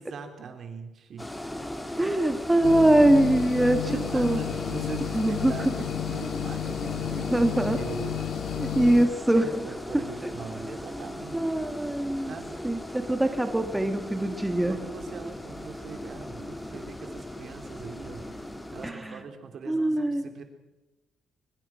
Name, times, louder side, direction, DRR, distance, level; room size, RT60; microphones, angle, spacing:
voice 1, 0.0-1.4 1.9-2.3 3.4-8.2 9.2-11.7 12.3-12.7 13.2-13.3 14.7-18.3 18.7-20.4, right 5 dB, 60° right, 6 dB, 3.5 m, -41 dB
sound 1, 1.2-18.9, left 1 dB, 10° left, 2.2 m, -38 dB
voice 2, 2.0-3.9 4.1-4.4 5.1-5.5 7.3-7.8 8.6-9.5 11.3-12.3 12.6-14.8 18.8-19.2 19.7-20.2, right 1 dB, 10° right, 7 dB, 1.6 m, -23 dB
sound 2, 2.6-9.1, left 10 dB, 75° left, 1.4 m, -32 dB
23.0 x 20.5 x 6.2 m, 1.0 s
cardioid pair, 90°, 0 cm